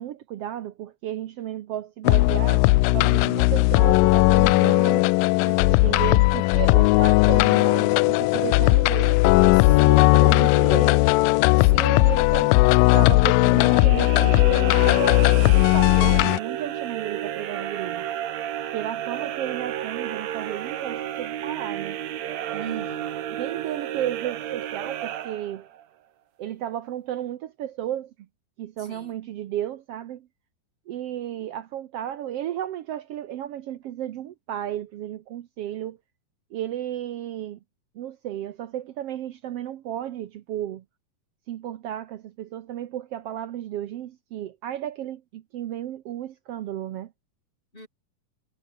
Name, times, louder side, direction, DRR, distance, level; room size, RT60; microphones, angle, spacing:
voice 1, 0.0-5.0 5.8-11.0 11.7-12.6 12.9-18.0 18.7-22.0 22.5-22.9 23.4-25.7 26.4-28.1 28.6-30.3 30.9-36.0 36.5-37.6 37.9-40.8 41.5-47.1, right 11 dB, 80° right, 1.4 m, -33 dB
sound 1, 2.0-16.4, left 23 dB, 85° left, 2.2 m, -18 dB
voice 2, 5.4-6.0 9.5-10.2 11.6-12.1 22.6-23.1 28.8-29.2 47.7-47.9, left 1 dB, 15° left, 7.5 m, -44 dB
sound 2, 13.6-25.8, right 11 dB, 60° right, 2.3 m, -32 dB
omnidirectional pair, 4.1 m